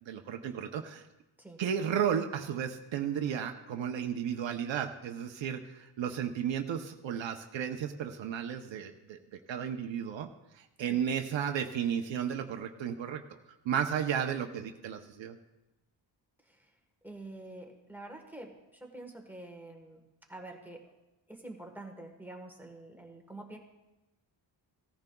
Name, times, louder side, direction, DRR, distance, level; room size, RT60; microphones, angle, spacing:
voice 1, 0.0-1.0 1.6-9.2 9.5-10.3 10.5-13.2 13.6-15.4, right 8 dB, 80° right, 4 dB, 0.7 m, -33 dB
voice 2, 17.0-20.0 20.3-20.9 21.3-23.6, right 2 dB, 5° right, 3 dB, 1.2 m, -47 dB
16.5 x 14.0 x 2.3 m, 1.0 s
wide cardioid pair, 155°, 44 cm